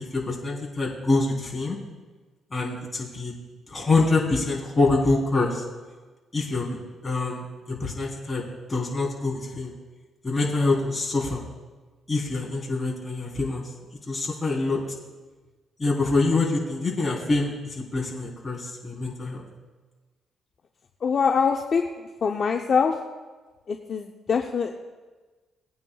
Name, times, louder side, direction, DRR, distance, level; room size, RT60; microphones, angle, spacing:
voice 1, 0.0-1.8 2.5-3.3 3.7-5.6 6.3-6.8 7.0-8.4 8.7-9.7 10.2-11.4 12.1-13.6 14.1-14.8 15.8-19.5, left 3 dB, 25° left, -3 dB, 3.6 m, -25 dB
voice 2, 21.0-23.0 23.7-24.7, left 6 dB, 50° left, 3 dB, 0.7 m, -24 dB
20.0 x 9.5 x 2.4 m, 1.3 s
cardioid pair, 90°, 0 cm